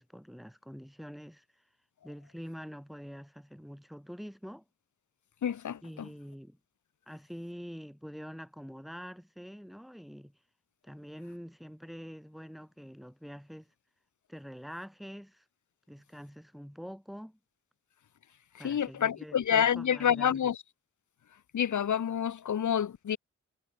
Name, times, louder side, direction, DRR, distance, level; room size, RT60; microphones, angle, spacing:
voice 1, 0.0-1.4 2.0-4.6 5.8-6.6 7.1-10.3 10.8-13.7 14.3-15.4 15.9-17.4 18.6-20.5, equal, ahead, 4.9 m, -45 dB
voice 2, 5.4-5.8 18.6-20.6 21.5-23.2, left 9 dB, 70° left, 0.6 m, -28 dB
wide cardioid pair, 60°, 31 cm